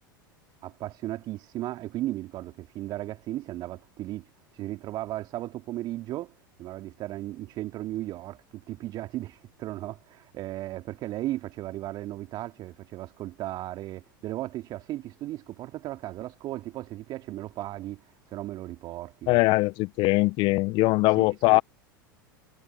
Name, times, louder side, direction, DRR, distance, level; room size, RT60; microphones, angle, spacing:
voice 1, 0.6-4.3 4.5-6.3 6.6-19.4 21.1-21.6, right 15 dB, 40° right, 2.6 m, -36 dB
voice 2, 19.3-21.6, left 23 dB, 45° left, 0.9 m, -21 dB
figure-of-eight pair, 85°, 11 cm